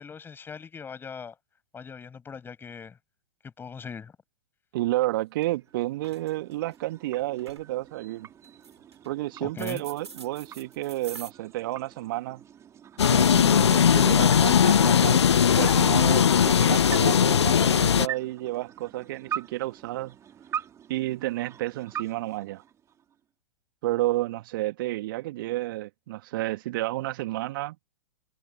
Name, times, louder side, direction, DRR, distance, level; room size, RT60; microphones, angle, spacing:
voice 1, 0.0-1.3 1.7-2.9 3.6-4.1 9.4-9.8, left 6 dB, 15° left, 6.9 m, -40 dB
voice 2, 4.7-8.3 9.1-12.4 13.1-15.3 15.6-20.2 20.9-22.6 23.8-27.8, right 17 dB, 50° right, 1.8 m, -31 dB
sound 1, 5.0-5.1 5.4-5.7 6.0-6.8 7.2-7.7 8.4-9.1 9.6-11.3, right 6 dB, 75° right, 6.1 m, -45 dB
sound 2, 5.5-23.2, right 9 dB, 20° right, 2.5 m, -43 dB
sound 3, 13.0-18.1, left 8 dB, 70° left, 0.8 m, -19 dB
figure-of-eight pair, 110°, 15 cm